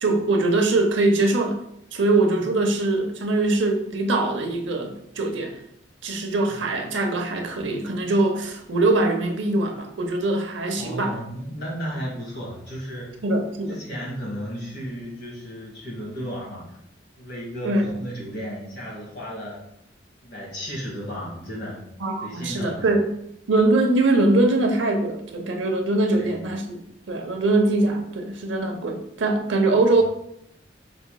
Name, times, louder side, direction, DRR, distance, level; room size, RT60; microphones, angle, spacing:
voice 1, 0.0-1.6 1.9-5.6 6.0-11.2 13.2-13.8 17.6-17.9 22.0-23.1 23.5-26.8 27.1-30.0, right 2 dB, 80° right, 4 dB, 0.7 m, -22 dB
voice 2, 10.8-13.2 13.7-16.8 17.2-19.6 20.2-21.8 22.2-22.9 26.1-26.4, equal, 60° left, -3 dB, 1.8 m, -34 dB
5.7 x 4.0 x 2.2 m, 0.76 s
head